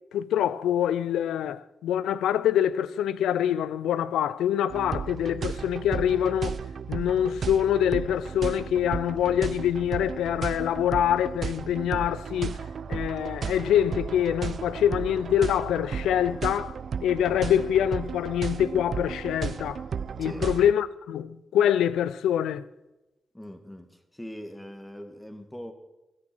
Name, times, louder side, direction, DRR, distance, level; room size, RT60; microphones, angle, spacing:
voice 1, 0.1-6.6 6.9-12.6 12.9-16.8 17.0-19.8 20.2-22.7, left 10 dB, 85° left, 0.5 m, -25 dB
sound 1, 4.7-20.7, right 6 dB, 60° right, 0.6 m, -34 dB
voice 2, 20.2-20.5 23.3-25.7, equal, 10° left, 2.1 m, -41 dB
15.0 x 13.0 x 6.2 m
supercardioid pair, 45°, 0 cm